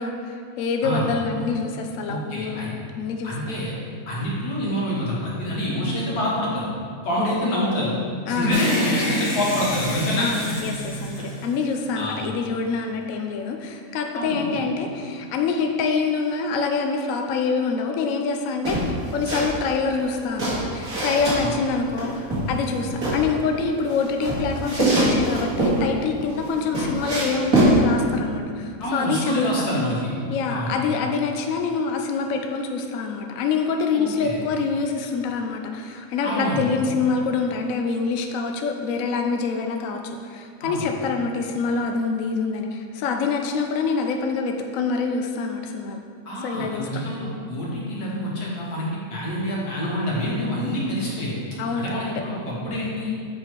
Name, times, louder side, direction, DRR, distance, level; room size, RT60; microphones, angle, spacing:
voice 1, 0.0-3.3 7.2-7.3 8.3-8.6 10.1-29.5 30.3-46.0 46.4-46.9 51.6-52.0, left 4 dB, 70° left, 4 dB, 0.9 m, -26 dB
voice 2, 2.1-2.7 3.2-3.7 4.1-6.7 7.0-7.9 8.3-10.3 12.0-12.2 14.1-14.6 21.4-21.5 22.9-23.0 28.8-30.1 30.5-30.7 33.9-34.4 36.2-36.6 40.6-40.9 46.3-51.3 51.8-53.1, equal, 90° left, -5 dB, 2.1 m, -26 dB
sound 1, 8.5-12.0, left 1 dB, 50° left, 1.4 m, -27 dB
sound 2, 18.6-19.5 19.8-21.4 22.0-23.2 23.9-25.8 26.3-27.7, right 2 dB, 70° right, 2.4 m, -23 dB
7.5 x 4.7 x 4.6 m, 2.2 s
omnidirectional pair, 1.6 m